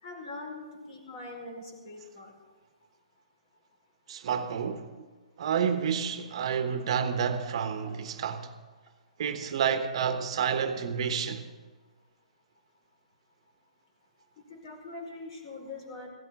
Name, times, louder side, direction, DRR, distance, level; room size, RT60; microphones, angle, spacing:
voice 1, 0.0-2.3 7.8-7.9 14.5-16.1, left 2 dB, 45° left, 4.8 m, -42 dB
voice 2, 4.1-5.1 5.4-8.5 9.2-11.5, right 7 dB, 50° right, 1.2 m, -29 dB
16.0 x 13.0 x 5.4 m
hypercardioid pair, 140°, 4 cm